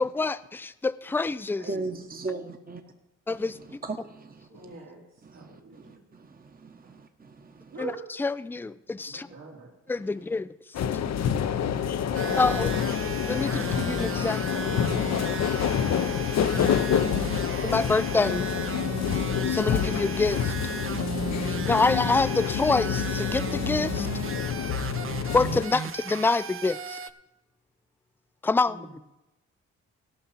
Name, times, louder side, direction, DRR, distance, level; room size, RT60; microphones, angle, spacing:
voice 1, 0.0-1.6 3.3-3.8 7.8-7.9 8.2-9.3 9.9-10.5 12.4-12.7 13.3-14.5 17.6-18.5 19.5-20.5 21.5-24.1 25.3-27.0 28.4-29.0, left 3 dB, 5° left, 15 dB, 0.4 m, -26 dB
voice 2, 1.7-2.8 3.3-4.8 5.2-7.8 8.9-9.4 9.9-10.4 11.0-12.0, right 3 dB, 30° right, 5 dB, 1.1 m, -41 dB
voice 3, 4.5-5.0 5.3-5.9 6.8-6.9 7.7-8.0 9.1-9.7 11.7-12.6 28.6-28.9, right 2 dB, 80° right, -5 dB, 2.8 m, -43 dB
sound 1, 10.7-25.7, left 8 dB, 60° left, 0.7 m, -27 dB
sound 2, 12.1-27.1, right 7 dB, 45° right, 0.7 m, -36 dB
16.5 x 5.7 x 5.7 m, 0.98 s
supercardioid pair, 60°, 30 cm